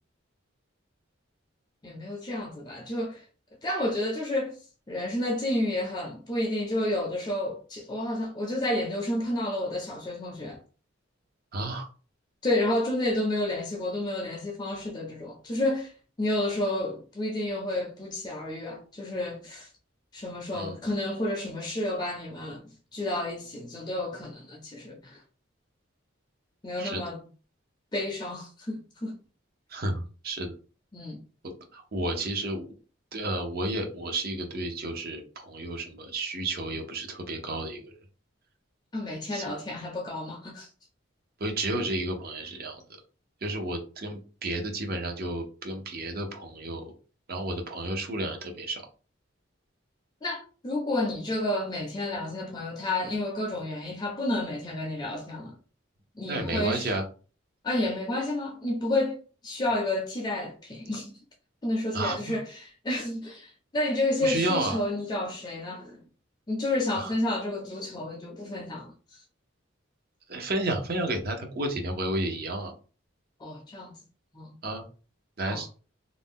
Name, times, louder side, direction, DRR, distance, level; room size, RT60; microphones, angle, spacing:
voice 1, 1.8-3.3 3.6-4.6 4.9-10.6 12.4-15.9 16.2-19.7 20.1-25.2 26.6-27.2 27.9-29.2 30.9-31.2 38.9-40.7 50.2-55.5 56.1-56.9 57.6-59.2 59.4-61.2 61.6-66.0 66.5-69.2 73.4-74.0 74.3-74.6 75.4-75.6, left 1 dB, 20° left, 0.4 m, -30 dB
voice 2, 11.5-11.9 20.5-20.8 26.8-27.0 29.7-30.5 31.4-32.7 33.1-37.9 39.3-39.4 41.4-42.8 43.4-46.9 47.3-48.8 56.3-57.1 61.9-62.4 64.2-64.8 66.9-67.1 70.3-72.7 74.6-74.8 75.4-75.8, right 2 dB, 50° right, 0.6 m, -32 dB
2.5 x 2.1 x 3.5 m
head